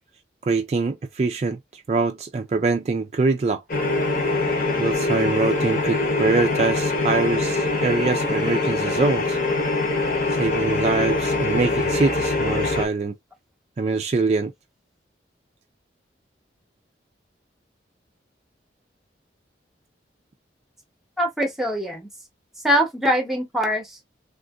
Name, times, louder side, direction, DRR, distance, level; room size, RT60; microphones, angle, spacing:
voice 1, 0.4-3.6 4.8-9.4 10.4-13.1 13.8-14.5, right 3 dB, 35° right, 0.3 m, -24 dB
sound 1, 3.7-12.9, left 2 dB, 50° left, 0.9 m, -23 dB
voice 2, 21.2-22.1 22.6-24.0, equal, ahead, 0.7 m, -23 dB
3.5 x 2.5 x 2.2 m
head